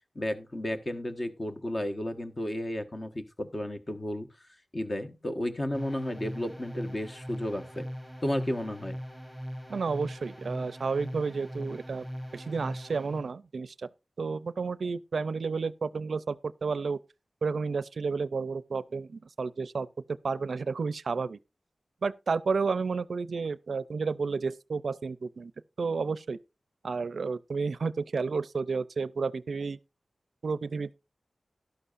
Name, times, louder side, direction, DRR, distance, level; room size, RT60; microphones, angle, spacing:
voice 1, 0.1-4.3 4.7-7.9 8.2-9.0, left 1 dB, 35° left, 1.3 m, -33 dB
sound 1, 5.7-13.3, equal, 10° left, 2.8 m, -40 dB
voice 2, 9.7-12.1 12.3-13.9 14.2-17.0 17.4-19.9 20.2-21.4 22.0-25.5 25.8-26.4 26.8-29.8 30.4-30.9, right 4 dB, 80° right, 0.4 m, -31 dB
12.5 x 12.0 x 2.5 m
wide cardioid pair, 80°, 0 cm